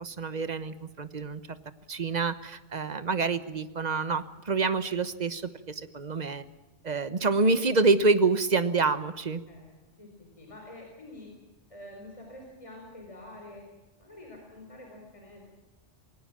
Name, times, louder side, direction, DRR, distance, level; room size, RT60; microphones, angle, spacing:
voice 1, 0.0-1.4 1.9-6.4 6.8-9.4, right 3 dB, 40° right, 13 dB, 1.1 m, -27 dB
voice 2, 9.5-11.3 11.7-13.6 14.0-15.5, left 1 dB, 30° left, 0 dB, 4.5 m, -47 dB
22.0 x 18.0 x 7.5 m, 1.1 s
omnidirectional pair, 1.2 m